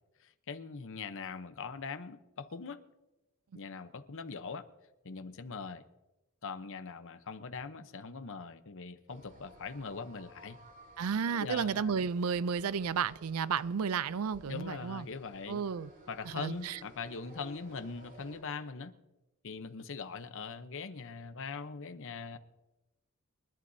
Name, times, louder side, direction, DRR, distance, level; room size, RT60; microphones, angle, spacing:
voice 1, 0.2-2.8 3.5-4.6 5.0-5.8 6.4-10.6 11.3-12.1 14.5-15.6 16.1-18.9 19.4-22.4, left 5 dB, 60° left, 0.8 m, -42 dB
sound 1, 9.1-18.4, equal, 40° right, 3.9 m, -56 dB
voice 2, 11.0-15.0 15.5-15.9 16.4-16.8, right 6 dB, 70° right, 0.4 m, -32 dB
28.0 x 11.5 x 2.7 m
head